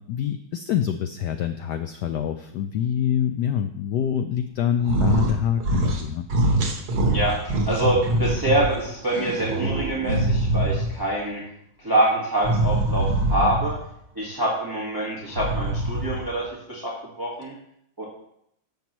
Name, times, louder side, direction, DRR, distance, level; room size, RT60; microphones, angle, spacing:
voice 1, 0.1-6.3, left 9 dB, 80° left, 8 dB, 0.9 m, -26 dB
sound 1, 4.8-5.3 5.6-6.0 6.3-8.7 9.1-11.0 12.4-13.8 15.2-16.3, right 1 dB, 80° right, 2.2 m, -23 dB
voice 2, 7.1-11.4 11.8-13.7 14.1-17.5 18.0-18.1, right 1 dB, 10° right, -5 dB, 1.4 m, -25 dB
10.5 x 7.4 x 3.0 m, 0.74 s
omnidirectional pair, 2.3 m